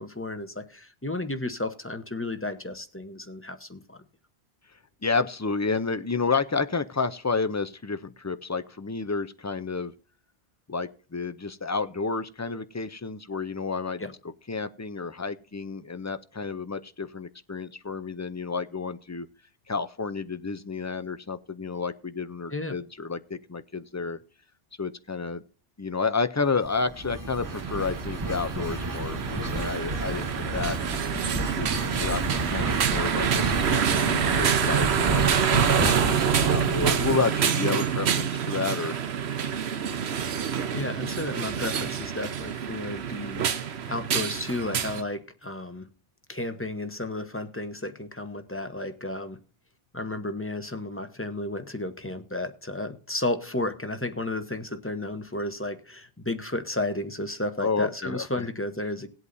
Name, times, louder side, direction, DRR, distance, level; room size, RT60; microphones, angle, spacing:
voice 1, 0.0-4.0 14.0-14.1 22.5-22.7 40.7-45.9 46.3-49.4 49.9-59.1, left 2 dB, 15° left, 8 dB, 0.9 m, -33 dB
voice 2, 5.0-9.9 10.7-14.0 14.5-19.3 19.7-24.2 24.8-25.4 25.8-30.8 31.6-39.0 57.6-58.5, left 4 dB, 30° left, 11 dB, 0.3 m, -30 dB
sound 1, 26.5-37.2, right 1 dB, 20° right, 1.1 m, -32 dB
sound 2, 27.4-45.0, right 8 dB, 80° right, 1.1 m, -27 dB
19.5 x 8.2 x 2.7 m, 0.40 s
omnidirectional pair, 1.1 m